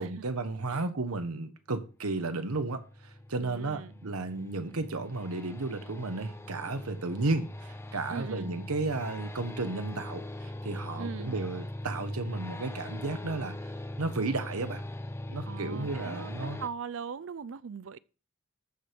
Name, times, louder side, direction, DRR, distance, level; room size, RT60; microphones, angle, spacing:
voice 1, 0.0-13.5 14.0-14.8 15.3-16.6, right 3 dB, 80° right, 1.1 m, -33 dB
sound 1, 1.9-16.7, left 1 dB, 10° left, 0.5 m, -41 dB
voice 2, 3.4-3.9 8.1-8.5 11.0-11.3 15.5-18.0, right 6 dB, 60° right, 0.4 m, -40 dB
13.5 x 4.6 x 5.1 m
head